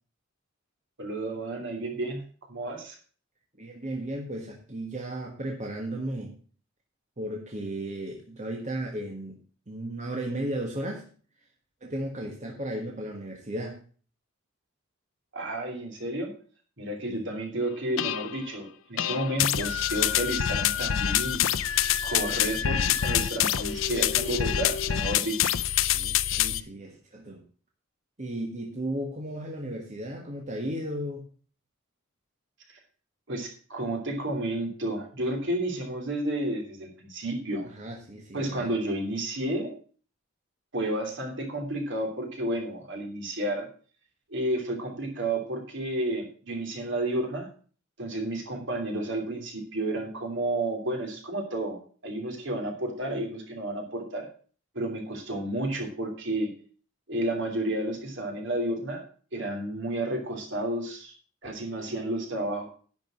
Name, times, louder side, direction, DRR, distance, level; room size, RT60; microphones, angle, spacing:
voice 1, 1.0-2.2 2.5-2.9 15.3-16.3 16.8-21.4 22.0-25.5 33.3-37.7 38.3-39.7 40.7-43.7 44.3-47.5 48.0-54.3 54.7-56.5 57.1-59.0 59.3-61.1 61.4-62.7, right 1 dB, 65° right, 2 dB, 3.1 m, -31 dB
voice 2, 3.6-6.3 7.2-9.4 9.7-11.0 11.8-13.8 17.1-17.2 25.9-27.4 28.2-31.2 37.6-38.7, right 1 dB, 35° right, 0 dB, 1.6 m, -35 dB
sound 1, 18.0-18.4 19.0-26.6, left 10 dB, 75° left, 0.5 m, -26 dB
11.0 x 5.3 x 7.5 m, 0.41 s
head